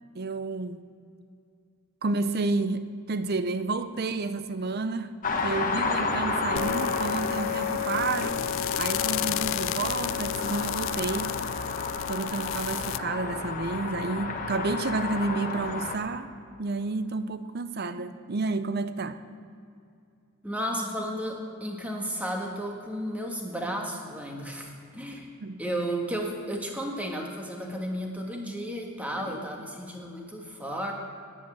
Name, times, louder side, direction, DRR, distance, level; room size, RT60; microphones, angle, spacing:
voice 1, 0.1-0.8 2.0-5.1 5.4-8.5 8.8-11.4 12.1-16.3 16.6-19.2 25.4-25.6 29.2-29.3, right 3 dB, 45° right, 12 dB, 0.6 m, -30 dB
sound 1, 5.2-16.0, left 3 dB, 40° left, 1.2 m, -32 dB
sound 2, 6.6-13.0, left 12 dB, 60° left, 0.3 m, -32 dB
voice 2, 20.4-25.3 25.6-30.9, equal, 5° right, 1 dB, 1.5 m, -33 dB
10.0 x 9.4 x 8.8 m, 2.5 s
head